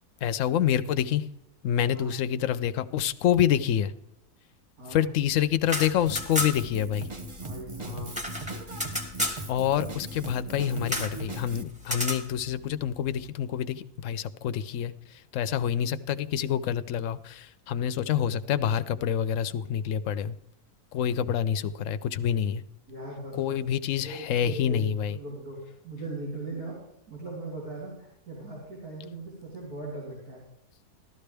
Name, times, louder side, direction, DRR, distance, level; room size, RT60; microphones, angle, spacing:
voice 1, 0.2-1.3 1.6-3.9 4.9-7.1 9.5-20.4 20.9-22.6 23.4-25.2, left 9 dB, 65° left, 13 dB, 0.8 m, -27 dB
sound 1, 5.7-6.8 7.1-7.2 7.4-9.4 10.9-11.2 11.8-12.2, left 1 dB, 5° right, 1.2 m, -31 dB
Drum kit, 6.1-11.6, right 2 dB, 30° right, 0.6 m, -39 dB
voice 2, 7.4-8.1 22.9-23.5 24.0-26.8 27.1-30.5, right 2 dB, 75° right, -5 dB, 3.5 m, -39 dB
14.5 x 12.5 x 3.4 m, 0.78 s
omnidirectional pair, 1.7 m